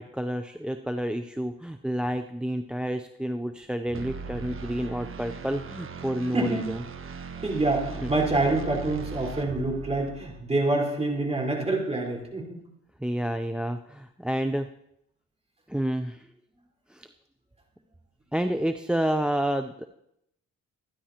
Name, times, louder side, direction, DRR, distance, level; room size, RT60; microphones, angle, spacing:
voice 1, 0.0-6.8 8.0-8.1 13.0-14.7 15.7-16.3 16.9-17.1 18.3-19.8, equal, 5° right, 8 dB, 0.5 m, -29 dB
sound 1, 3.9-10.4, right 4 dB, 45° right, 1.2 m, -39 dB
voice 2, 7.4-12.6, right 2 dB, 20° right, -1 dB, 4.3 m, -26 dB
25.0 x 10.0 x 2.9 m, 0.78 s
cardioid pair, 90°, 30 cm